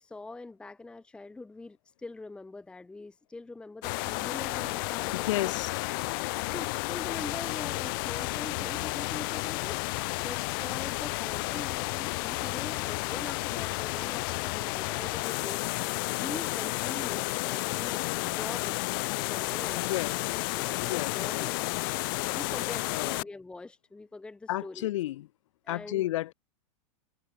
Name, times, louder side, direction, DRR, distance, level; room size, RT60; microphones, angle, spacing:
voice 1, 0.0-5.5 6.4-9.8 10.2-15.7 16.2-18.9 19.3-20.0 20.5-21.6 22.3-24.9 25.6-26.1, left 3 dB, 5° left, 1.2 m, -43 dB
sound 1, 3.8-23.2, left 27 dB, 45° left, 0.5 m, -32 dB
voice 2, 5.1-5.7 6.5-6.6 19.7-20.2 20.8-21.5 22.9-23.2 24.5-25.3 25.7-26.3, left 15 dB, 70° left, 1.1 m, -32 dB
supercardioid pair, 165°, 17 cm